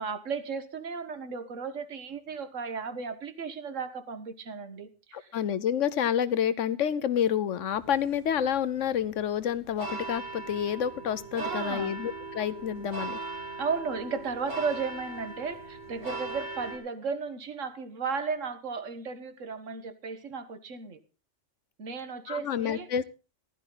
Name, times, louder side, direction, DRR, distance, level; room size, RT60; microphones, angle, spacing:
voice 1, 0.0-5.3 11.4-11.9 13.6-21.0 21.8-22.9, right 5 dB, 80° right, 11 dB, 1.7 m, -35 dB
voice 2, 5.1-13.2 22.3-23.0, left 9 dB, 75° left, 16 dB, 1.2 m, -29 dB
sound 1, 7.7-16.8, right 3 dB, 65° right, 4.6 m, -39 dB
15.5 x 12.0 x 3.9 m, 0.31 s
omnidirectional pair, 1.3 m